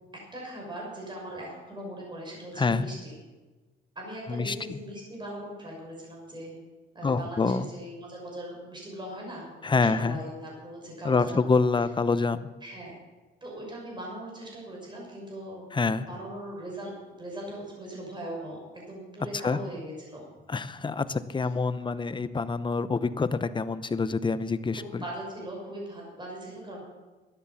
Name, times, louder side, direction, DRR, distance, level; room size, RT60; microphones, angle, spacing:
voice 1, 0.3-3.2 3.9-6.5 6.9-11.4 12.6-12.9 13.4-15.7 16.1-20.2 24.7-26.8, right 1 dB, 25° right, -3 dB, 6.1 m, -40 dB
voice 2, 2.6-2.9 4.3-4.8 7.0-7.7 9.6-10.2 11.0-12.5 15.7-16.1 19.3-19.6 20.5-25.0, left 4 dB, 25° left, 13 dB, 0.8 m, -26 dB
12.5 x 10.0 x 7.2 m, 1.3 s
cardioid pair, 90°, 20 cm